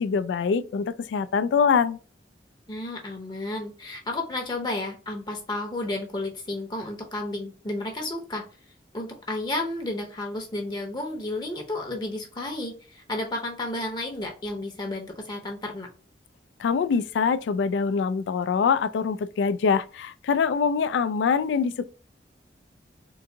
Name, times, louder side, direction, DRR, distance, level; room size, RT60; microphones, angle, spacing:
voice 1, 0.0-2.0 16.6-21.9, left 6 dB, 85° left, 0.3 m, -24 dB
voice 2, 2.7-8.4 8.9-15.9, left 2 dB, 25° left, 0.7 m, -32 dB
3.8 x 2.6 x 2.6 m
head